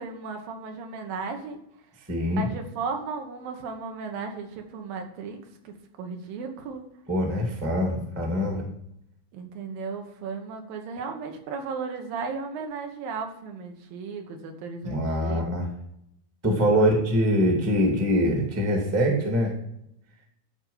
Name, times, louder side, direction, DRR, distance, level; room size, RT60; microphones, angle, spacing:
voice 1, 0.0-1.6 2.3-5.4 5.6-6.8 9.3-15.4 16.6-16.9, right 5 dB, 75° right, 4 dB, 3.0 m, -35 dB
voice 2, 2.1-2.5 7.1-8.6 14.8-15.7 16.4-19.6, equal, 10° right, 1 dB, 0.9 m, -23 dB
12.5 x 4.4 x 5.5 m, 0.76 s
omnidirectional pair, 4.2 m